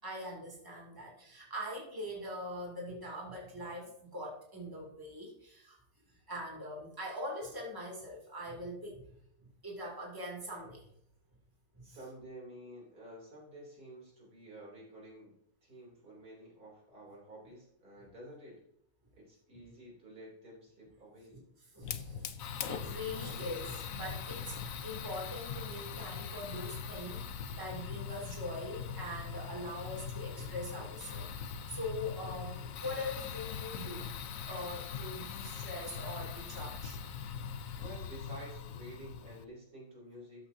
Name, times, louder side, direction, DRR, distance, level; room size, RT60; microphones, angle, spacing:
voice 1, 0.0-5.8 6.3-9.1 9.4-10.9 11.7-12.0 21.3-21.4 21.7-22.2 22.7-34.1 34.5-37.0 37.3-37.4, left 1 dB, 15° right, -2 dB, 2.8 m, -42 dB
voice 2, 11.8-15.3 15.6-18.6 19.2-21.4 37.8-40.5, right 1 dB, 65° right, -3 dB, 3.9 m, -51 dB
Fire, 21.8-39.4, left 7 dB, 65° left, 1.1 m, -41 dB
13.0 x 8.5 x 2.8 m, 0.71 s
omnidirectional pair, 1.7 m